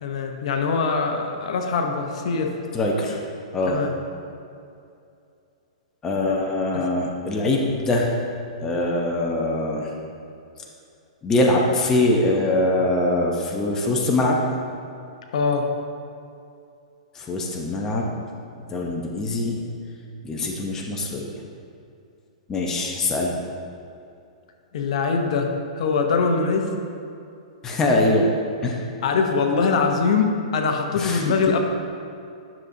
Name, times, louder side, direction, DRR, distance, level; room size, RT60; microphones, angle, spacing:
voice 1, 0.0-2.6 3.7-3.9 6.7-6.9 15.3-15.7 24.7-26.7 29.0-31.6, left 4 dB, 60° left, 4 dB, 0.8 m, -23 dB
voice 2, 2.7-3.2 3.5-3.8 6.0-8.1 8.6-9.9 11.2-14.4 17.1-18.1 18.7-19.6 20.2-21.3 22.5-23.4 27.6-28.3 28.6-28.8 31.0-31.2, left 2 dB, 15° left, -1 dB, 0.7 m, -23 dB
10.0 x 6.5 x 2.7 m, 2.5 s
hypercardioid pair, 155°, 4 cm